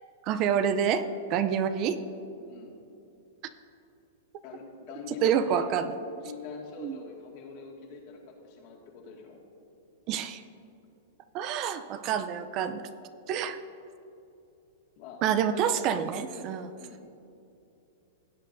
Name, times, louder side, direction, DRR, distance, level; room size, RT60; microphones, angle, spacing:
voice 1, 0.2-2.0 5.2-5.9 6.8-7.0 10.1-10.4 11.3-12.9 13.3-13.6 15.2-16.7, right 8 dB, 40° right, 11 dB, 0.5 m, -27 dB
voice 2, 2.5-2.8 4.4-5.7 6.2-9.4 15.0-15.2 15.5-15.8 16.7-17.0, left 6 dB, 50° left, -1 dB, 2.0 m, -44 dB
17.0 x 8.3 x 2.6 m, 2.8 s
hypercardioid pair, 125°, 0 cm